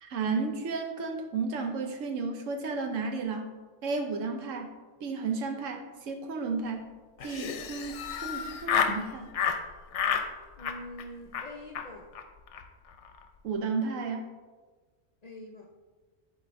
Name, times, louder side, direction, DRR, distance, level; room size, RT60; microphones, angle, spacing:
voice 1, 0.0-3.5 3.8-4.7 5.0-6.8 7.2-9.3 13.4-14.3, right 4 dB, 85° right, 5 dB, 1.1 m, -33 dB
Laughter, 7.2-9.0 9.3-9.6 9.9-10.3 10.6-11.0 11.3-11.5 11.7-11.9 12.1-12.2 12.5-12.6 12.9-13.2, left 7 dB, 75° left, 0.9 m, -30 dB
voice 2, 10.6-12.1 15.2-15.7, left 1 dB, 55° left, 0 dB, 0.4 m, -44 dB
11.0 x 4.4 x 2.6 m, 1.3 s
omnidirectional pair, 1.3 m